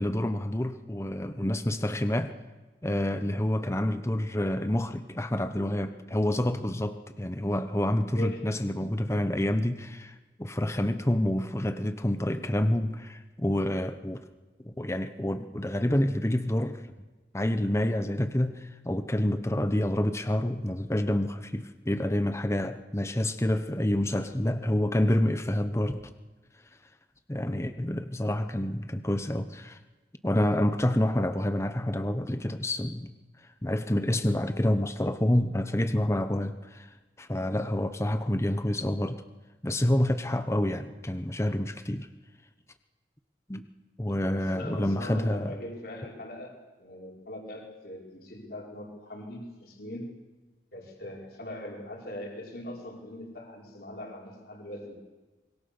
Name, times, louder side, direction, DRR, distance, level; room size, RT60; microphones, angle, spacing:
voice 1, 0.0-2.3 2.8-14.2 14.6-16.9 17.3-26.1 27.3-29.8 30.2-33.1 33.4-39.2 39.6-42.1 43.5-43.7 44.0-45.6, left 1 dB, 15° left, 9 dB, 0.9 m, -28 dB
voice 2, 8.1-8.5 44.3-46.5 46.8-50.1 50.7-55.0, left 1 dB, 55° left, 0 dB, 4.9 m, -41 dB
25.0 x 22.5 x 6.9 m, 1.2 s
head